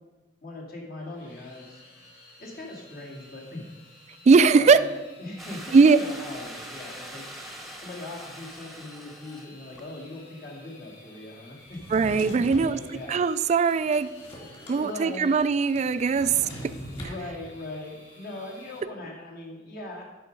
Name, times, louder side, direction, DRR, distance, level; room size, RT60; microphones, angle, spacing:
voice 1, 0.4-1.8 2.4-3.7 4.6-4.8 5.2-7.3 7.8-11.8 12.5-13.2 14.7-15.3 16.9-20.0, left 2 dB, 55° left, -2 dB, 2.1 m, -40 dB
sound 1, 1.0-18.8, left 2 dB, 80° left, 2.8 m, -53 dB
voice 2, 4.3-4.8 5.7-6.0 11.9-12.8 13.1-14.1 14.7-16.5, right 5 dB, 40° right, 14 dB, 0.3 m, -20 dB
sound 2, 5.4-9.5 9.7-9.8, right 1 dB, ahead, 1.0 m, -42 dB
Drawer open or close, 11.7-12.7 13.3-14.8 15.1-15.2 15.4-17.2, equal, 30° left, 2.5 m, -40 dB
11.5 x 5.1 x 5.2 m, 1.2 s
head